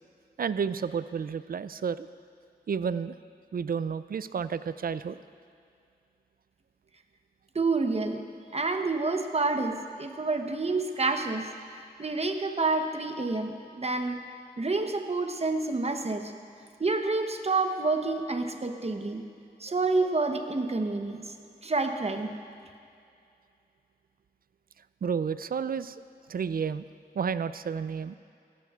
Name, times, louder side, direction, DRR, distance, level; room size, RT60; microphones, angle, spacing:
voice 1, 0.4-2.1 2.7-3.2 3.5-5.2 25.0-26.0 26.3-26.8 27.1-28.2, right 6 dB, 55° right, 14 dB, 0.4 m, -31 dB
voice 2, 7.5-8.2 8.5-11.5 12.0-14.2 14.6-16.3 16.8-19.2 19.6-21.3 21.6-22.4, right 3 dB, 35° right, 6 dB, 0.9 m, -28 dB
16.0 x 13.0 x 2.4 m, 2.5 s
cardioid pair, 50°, 18 cm